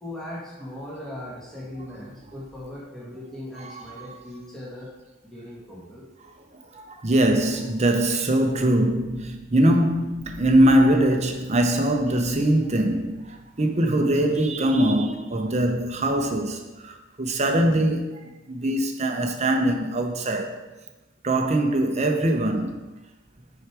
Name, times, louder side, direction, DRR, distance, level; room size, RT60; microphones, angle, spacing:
voice 1, 0.0-4.9 5.2-6.0, left 1 dB, ahead, 1.5 m, -38 dB
voice 2, 3.6-4.2 6.7-20.6 21.2-22.8, right 1 dB, 35° right, 0.7 m, -22 dB
6.3 x 4.7 x 4.8 m
head